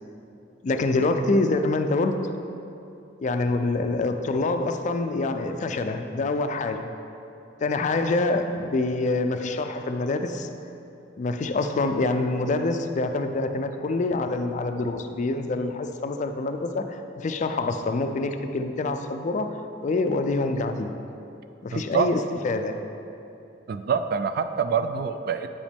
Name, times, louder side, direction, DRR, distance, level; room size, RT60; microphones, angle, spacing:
voice 1, 0.6-2.2 3.2-6.9 7.6-10.5 11.2-19.6 19.8-20.9 21.6-22.8, left 2 dB, 40° left, 7 dB, 0.3 m, -26 dB
voice 2, 21.7-22.1 23.7-25.5, right 6 dB, 55° right, 9 dB, 0.3 m, -26 dB
8.6 x 5.0 x 3.5 m, 2.7 s
head